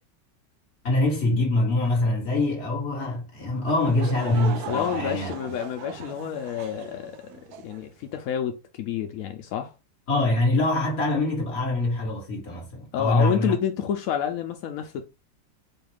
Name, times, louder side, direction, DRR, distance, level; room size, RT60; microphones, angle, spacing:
voice 1, 0.8-5.3 10.1-13.5, left 2 dB, 40° left, 1.6 m, -24 dB
Laughter / Crowd, 3.6-7.8, right 9 dB, 70° right, 1.0 m, -38 dB
voice 2, 4.7-9.7 12.9-15.1, left 9 dB, 75° left, 0.8 m, -29 dB
4.5 x 2.4 x 3.4 m
omnidirectional pair, 2.0 m